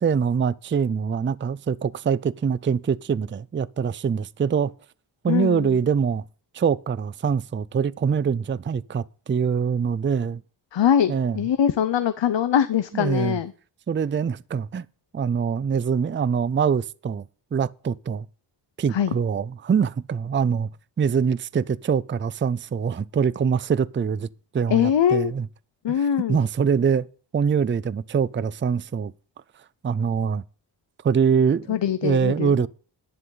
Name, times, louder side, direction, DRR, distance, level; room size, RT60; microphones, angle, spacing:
voice 1, 0.0-4.7 5.2-6.2 6.5-10.4 11.1-11.4 12.9-13.4 13.9-14.9 15.1-18.3 18.8-20.7 21.0-24.3 24.5-25.5 26.3-27.1 27.3-29.1 29.8-30.4 31.0-31.8 32.0-32.7, right 6 dB, 30° right, 0.4 m, -24 dB
voice 2, 5.3-5.8 10.7-13.5 18.9-19.1 24.7-25.3 25.8-26.4 31.7-32.6, left 9 dB, 85° left, 0.8 m, -22 dB
11.0 x 10.0 x 3.9 m
wide cardioid pair, 130°, 42 cm